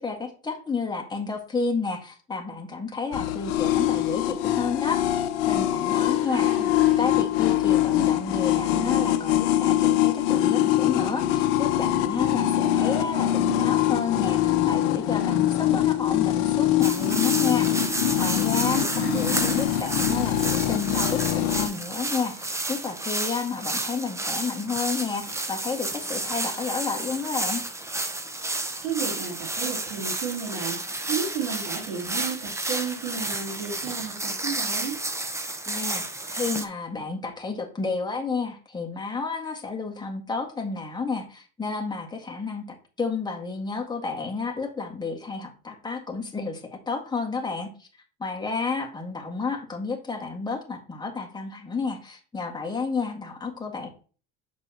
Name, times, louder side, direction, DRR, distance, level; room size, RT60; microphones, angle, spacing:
voice 1, 0.0-6.5 7.0-17.9 18.2-27.6 35.7-47.9 48.2-53.9, left 4 dB, 10° left, 1 dB, 1.7 m, -31 dB
sound 1, 3.1-21.7, left 12 dB, 65° left, 0.8 m, -23 dB
voice 2, 6.2-7.1 18.7-19.7 28.8-34.9, right 6 dB, 85° right, -5 dB, 3.6 m, -33 dB
sound 2, 16.8-36.6, right 2 dB, 10° right, 0.8 m, -31 dB
6.6 x 5.5 x 2.9 m, 0.38 s
hypercardioid pair, 90°, 35 cm